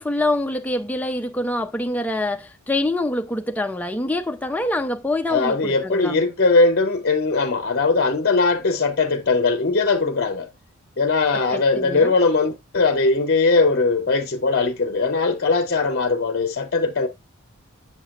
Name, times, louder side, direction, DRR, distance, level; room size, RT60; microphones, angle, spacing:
voice 1, 0.0-6.2 11.5-12.1, left 1 dB, 5° left, 0.5 m, -25 dB
voice 2, 5.3-10.5 11.0-17.1, left 3 dB, 45° left, 0.7 m, -20 dB
6.9 x 6.6 x 2.4 m
head